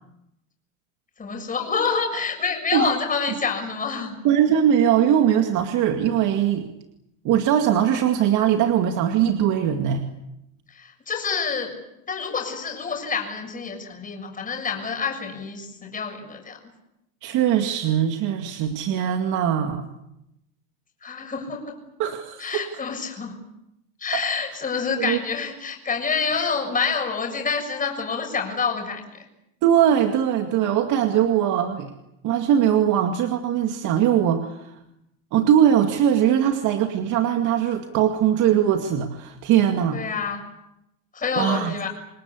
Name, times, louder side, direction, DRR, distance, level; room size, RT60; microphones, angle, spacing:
voice 1, 1.2-4.2 10.7-11.7 12.1-16.6 21.0-21.8 22.4-23.4 24.0-29.3 39.9-40.4 41.1-41.9, left 5 dB, 20° left, 3 dB, 6.9 m, -27 dB
voice 2, 4.2-6.6 7.2-10.0 17.2-19.9 22.0-22.7 24.1-24.2 25.0-25.2 29.6-31.9 32.2-34.7 35.3-40.0 41.4-41.7, right 9 dB, 45° right, 5 dB, 2.3 m, -21 dB
28.0 x 20.0 x 8.6 m, 0.86 s
supercardioid pair, 125°, 42 cm